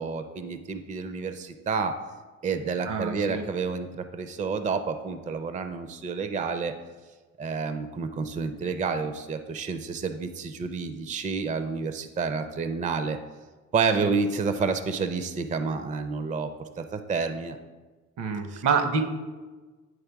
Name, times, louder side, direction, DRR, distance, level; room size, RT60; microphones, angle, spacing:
voice 1, 0.0-1.9 2.4-6.7 7.4-13.2 13.7-16.5 16.8-17.6 18.5-18.6, right 5 dB, 25° right, 9 dB, 0.4 m, -29 dB
voice 2, 2.8-3.5 14.0-14.2 18.2-19.0, right 5 dB, 75° right, 6 dB, 0.9 m, -27 dB
9.3 x 3.3 x 4.6 m, 1.3 s
cardioid pair, 90°, 30 cm